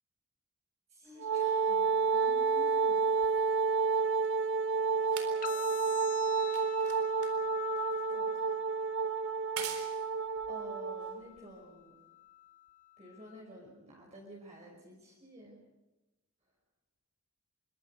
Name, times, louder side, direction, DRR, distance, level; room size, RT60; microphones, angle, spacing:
voice 1, 0.9-3.1 4.9-5.8 8.1-8.6 10.5-12.0 13.0-15.6, equal, 30° right, -3 dB, 5.6 m, -52 dB
Wind instrument woodwind instrument, 1.2-11.2, right 5 dB, 60° right, 1.3 m, -30 dB
sound 1, 3.2-11.8 12.7-12.8, right 8 dB, 85° right, 3.9 m, -48 dB
sound 2, 5.4-13.4, left 14 dB, 40° left, 1.6 m, -46 dB
27.0 x 24.5 x 5.1 m, 1.0 s
head